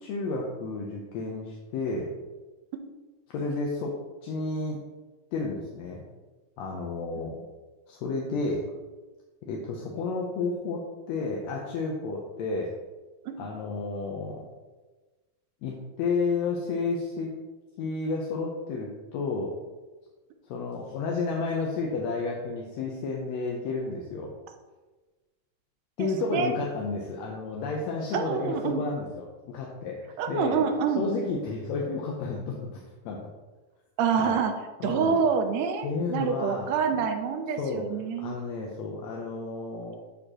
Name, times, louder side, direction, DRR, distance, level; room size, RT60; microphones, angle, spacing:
voice 1, 0.0-2.1 3.3-4.8 5.3-6.0 6.6-7.4 7.9-8.7 9.5-10.8 11.1-12.7 13.4-14.4 15.6-17.3 17.8-19.5 20.5-24.3 26.0-30.6 31.0-33.3 34.2-34.4 34.8-35.2 35.8-36.7 37.6-37.9 38.2-40.0, left 3 dB, 75° left, -1 dB, 1.8 m, -31 dB
voice 2, 26.0-26.5 28.1-28.8 30.2-31.0 34.0-34.5 34.8-38.4, right 6 dB, 75° right, 6 dB, 1.7 m, -27 dB
11.5 x 4.4 x 2.9 m, 1.2 s
omnidirectional pair, 3.6 m